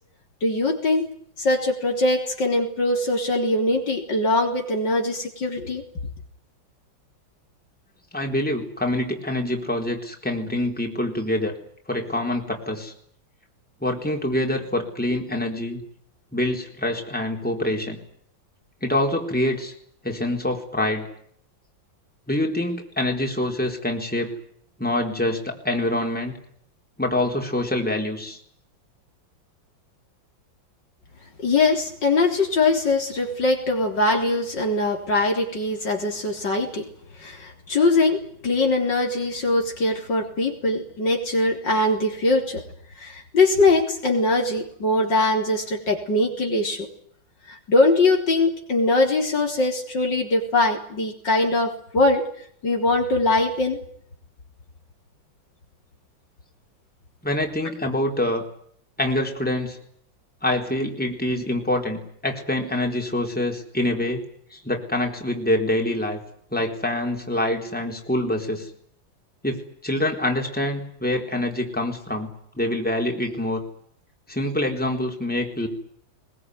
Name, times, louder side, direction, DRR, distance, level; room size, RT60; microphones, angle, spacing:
voice 1, 0.4-1.1 1.4-5.8 31.4-36.9 37.2-42.6 43.0-46.9 47.5-52.2 52.6-53.8, left 2 dB, 65° left, 2 dB, 4.4 m, -22 dB
voice 2, 8.1-11.6 11.9-12.9 13.8-15.8 16.3-18.0 18.8-19.7 20.0-21.1 22.3-24.3 24.8-26.4 27.0-28.4 57.2-58.4 59.0-59.8 60.4-64.2 64.5-66.2 66.5-68.7 69.4-69.6 69.8-72.3 72.6-73.6 74.3-75.7, left 1 dB, 5° left, 1 dB, 4.1 m, -25 dB
22.5 x 22.0 x 9.7 m, 0.65 s
omnidirectional pair, 2.1 m